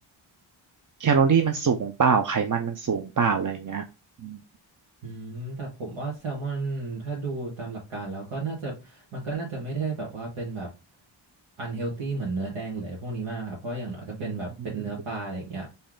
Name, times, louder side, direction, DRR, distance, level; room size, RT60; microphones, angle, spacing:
voice 1, 1.0-3.8 4.2-4.4, right 6 dB, 40° right, 6 dB, 0.6 m, -23 dB
voice 2, 5.0-10.7 11.6-15.7, right 3 dB, 90° right, -5 dB, 1.8 m, -33 dB
4.3 x 3.4 x 3.7 m, 0.26 s
wide cardioid pair, 80°, 48 cm